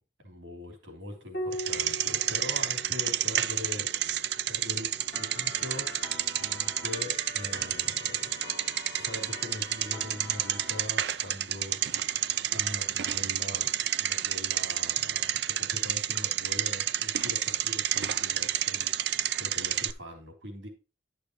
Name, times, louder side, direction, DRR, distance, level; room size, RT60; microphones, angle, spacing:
voice 1, 0.2-5.9 6.4-8.4 8.9-13.7 14.0-19.0 19.4-20.7, left 1 dB, 75° right, 3 dB, 3.5 m, -42 dB
Piano, 1.3-6.2 7.8-8.6, equal, 50° left, 1.7 m, -42 dB
Bicycle, 1.5-19.9, right 12 dB, 60° right, 0.5 m, -30 dB
Organ, 5.1-10.8, left 2 dB, 15° left, 4.8 m, -44 dB
12.0 x 6.8 x 3.1 m, 0.31 s
head